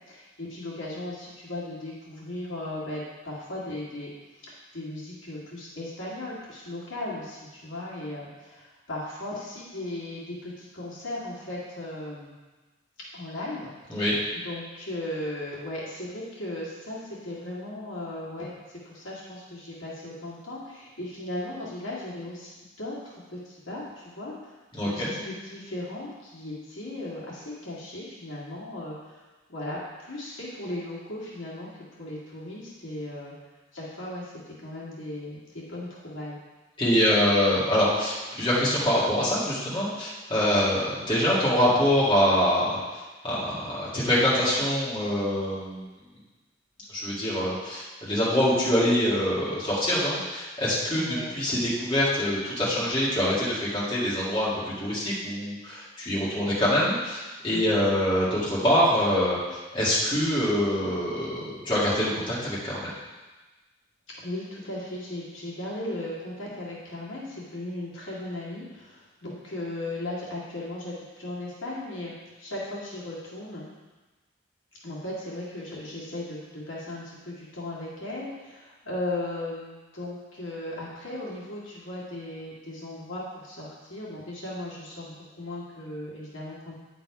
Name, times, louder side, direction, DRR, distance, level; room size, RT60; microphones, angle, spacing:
voice 1, 0.1-4.1 4.4-12.3 13.1-14.0 14.4-18.5 18.8-24.5 24.8-29.2 29.5-31.7 32.0-33.3 33.7-36.4 51.0-51.4 57.5-57.8 64.2-72.1 72.4-73.7 74.8-86.7, left 1 dB, 70° left, -6 dB, 2.0 m, -37 dB
voice 2, 24.7-25.1 36.8-45.9 46.9-62.9, equal, 25° left, -8 dB, 2.0 m, -25 dB
9.5 x 4.0 x 4.7 m, 1.2 s
head